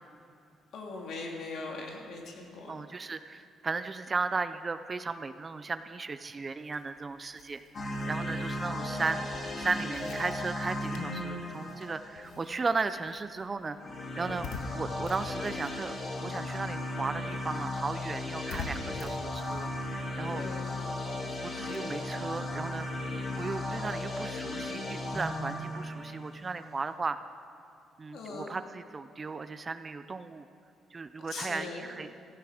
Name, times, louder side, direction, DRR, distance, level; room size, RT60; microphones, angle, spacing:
voice 1, 0.7-2.7 8.6-9.1 20.3-20.8 28.1-28.5 31.3-31.9, left 3 dB, 60° left, 0 dB, 2.6 m, -40 dB
voice 2, 2.7-9.3 9.6-13.8 14.2-15.9 16.2-20.4 21.4-22.9 23.4-27.2 28.0-30.4 30.9-32.1, right 4 dB, 25° right, 11 dB, 0.4 m, -35 dB
sound 1, 6.6-16.5 16.8-23.7, left 4 dB, 90° left, 1.2 m, -48 dB
sound 2, 7.7-12.6 13.7-26.8, left 1 dB, 30° left, 1.9 m, -36 dB
16.0 x 15.0 x 4.9 m, 2.5 s
cardioid pair, 165°, 0 cm